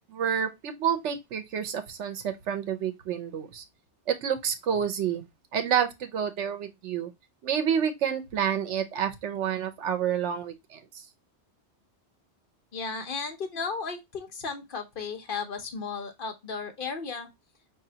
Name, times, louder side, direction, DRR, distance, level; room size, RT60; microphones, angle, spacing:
voice 1, 0.1-3.6 4.1-5.3 5.5-7.1 7.4-10.8, right 8 dB, 90° right, 1.0 m, -29 dB
voice 2, 12.7-17.3, left 5 dB, 55° left, 0.9 m, -34 dB
5.0 x 2.7 x 2.7 m
omnidirectional pair, 1.2 m